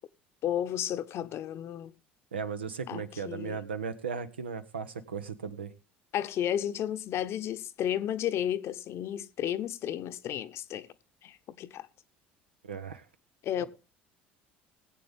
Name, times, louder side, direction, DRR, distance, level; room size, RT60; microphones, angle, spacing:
voice 1, 0.4-1.9 2.9-3.6 6.1-10.9 11.2-11.9 13.4-13.6, left 10 dB, 50° left, 0.8 m, -33 dB
voice 2, 2.3-5.7 12.6-13.0 13.6-13.7, right 6 dB, 90° right, 0.9 m, -36 dB
19.5 x 8.4 x 3.5 m
hypercardioid pair, 65°, 6 cm